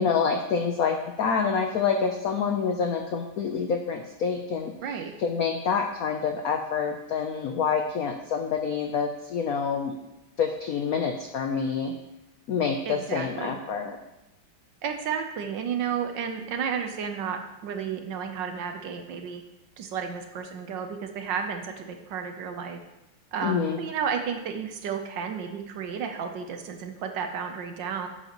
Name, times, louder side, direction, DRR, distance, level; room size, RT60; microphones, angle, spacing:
voice 1, 0.0-4.7 5.2-10.0 10.4-11.9 12.5-14.0 23.4-23.8, left 6 dB, 85° left, 4 dB, 0.8 m, -27 dB
voice 2, 4.8-5.1 12.9-13.6 14.8-19.4 19.8-22.8 23.3-28.1, right 7 dB, 70° right, 5 dB, 1.3 m, -32 dB
10.5 x 8.0 x 3.0 m, 0.94 s
omnidirectional pair, 2.3 m